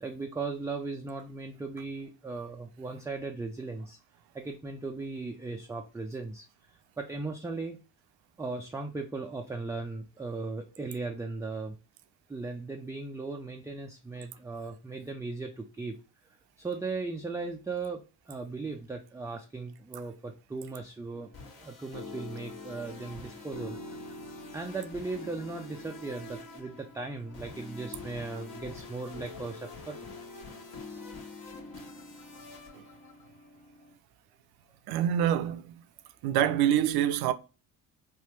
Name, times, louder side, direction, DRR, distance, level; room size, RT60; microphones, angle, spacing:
voice 1, 0.0-4.0 4.3-6.5 7.0-7.8 8.4-11.8 12.3-16.0 16.6-21.3 21.5-23.8 24.5-30.0, right 3 dB, 10° right, 0.3 m, -37 dB
sound 1, 21.1-33.9, left 2 dB, 55° left, 1.3 m, -45 dB
voice 2, 34.9-35.6 36.2-37.3, right 10 dB, 60° right, 0.5 m, -25 dB
3.3 x 2.3 x 3.0 m
hypercardioid pair, 60°, 44 cm